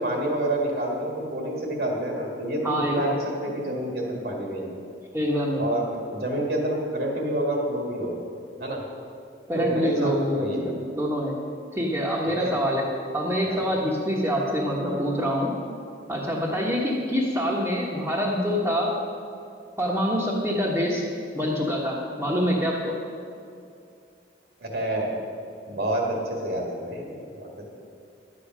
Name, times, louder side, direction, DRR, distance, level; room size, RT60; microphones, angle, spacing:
voice 1, 0.0-4.7 5.6-8.3 8.6-8.8 9.5-10.8 12.3-12.5 13.4-13.7 24.6-25.2 25.7-27.5, right 1 dB, 65° right, -1 dB, 2.0 m, -28 dB
voice 2, 2.6-3.2 5.1-5.6 9.5-11.4 11.7-12.8 13.1-15.5 16.1-18.9 19.8-21.0 21.3-22.9, equal, 10° right, -7 dB, 1.4 m, -25 dB
12.0 x 8.4 x 6.2 m, 2.5 s
head